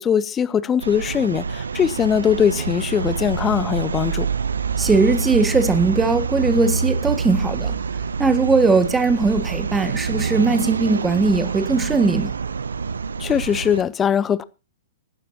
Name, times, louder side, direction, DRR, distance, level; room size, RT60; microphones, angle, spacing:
voice 1, 0.0-4.3 13.2-14.4, left 8 dB, 20° left, 0.8 m, -21 dB
sound 1, 0.8-13.8, right 5 dB, 75° right, 0.6 m, -26 dB
voice 2, 4.8-7.8 8.2-12.3, right 4 dB, 10° right, 1.7 m, -19 dB
17.0 x 12.0 x 2.9 m
figure-of-eight pair, 110°, 0 cm